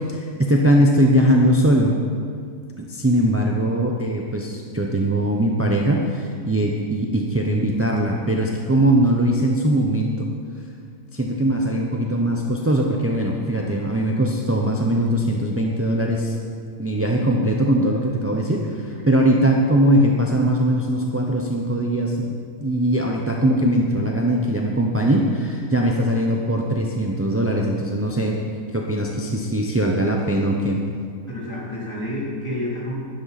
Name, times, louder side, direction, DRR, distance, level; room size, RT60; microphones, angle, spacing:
voice 1, 0.1-2.0 2.8-10.3 11.1-16.3 16.8-28.4 28.7-30.8, right 1 dB, 15° right, 0 dB, 0.4 m, -20 dB
voice 2, 31.3-33.1, left 1 dB, 20° left, -7 dB, 3.4 m, -29 dB
13.0 x 11.5 x 4.1 m, 2.2 s
omnidirectional pair, 1.5 m